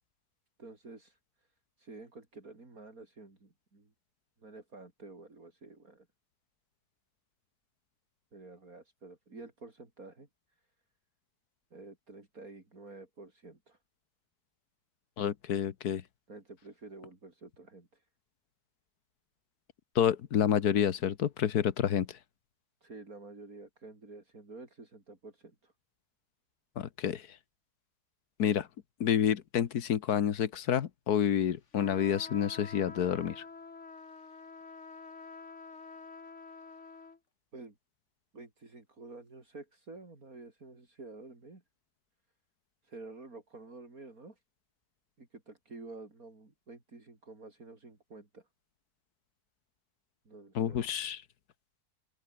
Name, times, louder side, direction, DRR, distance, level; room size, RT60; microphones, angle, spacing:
voice 1, 0.6-1.2 1.8-3.9 4.4-6.1 8.3-10.3 11.7-13.8 16.3-18.0 22.8-25.7 37.5-37.8 38.3-41.6 42.8-44.4 45.2-48.5 50.2-50.8, right 3 dB, 65° right, 4.8 m, -50 dB
voice 2, 15.2-16.0 20.0-22.2 26.8-27.3 28.4-28.7 29.0-33.5 50.6-51.2, left 9 dB, 90° left, 1.7 m, -29 dB
sound 1, 31.7-37.2, left 4 dB, 50° left, 2.5 m, -48 dB
open air
omnidirectional pair, 1.6 m